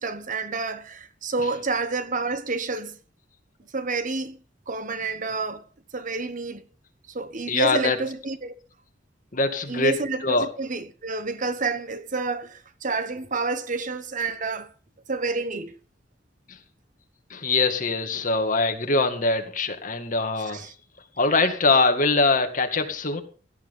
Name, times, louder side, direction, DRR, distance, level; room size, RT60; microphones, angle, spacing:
voice 1, 0.0-3.0 3.7-4.4 4.7-5.6 5.9-6.6 7.1-8.5 9.7-14.7 15.1-15.8 20.5-20.7, right 3 dB, 45° right, 1.2 m, -29 dB
voice 2, 7.5-8.0 9.3-9.9 10.2-10.5 16.5-16.6 17.3-20.7 21.2-23.2, left 3 dB, 45° left, 2.2 m, -23 dB
17.0 x 13.0 x 3.8 m
head